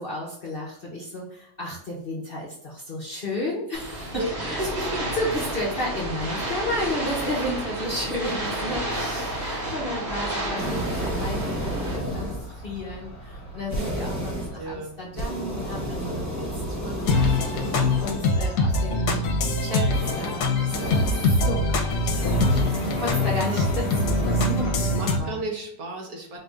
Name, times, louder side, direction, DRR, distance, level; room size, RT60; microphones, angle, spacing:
voice 1, 0.0-4.7 5.2-19.2 19.6-24.8 25.1-25.4, left 1 dB, 45° left, -5 dB, 0.8 m, -33 dB
sound 1, 3.7-12.0, right 1 dB, 40° right, 1.4 m, -31 dB
voice 2, 4.7-5.0 9.6-10.0 14.6-15.0 23.4-23.7 24.7-26.4, right 1 dB, 60° right, 0 dB, 1.4 m, -34 dB
sound 2, 10.6-18.5 19.9-21.5 22.0-24.6, right 1 dB, 15° right, 0.5 m, -32 dB
sound 3, 17.1-25.2, left 2 dB, 70° left, 1.2 m, -23 dB
4.5 x 2.5 x 3.3 m, 0.73 s
omnidirectional pair, 1.9 m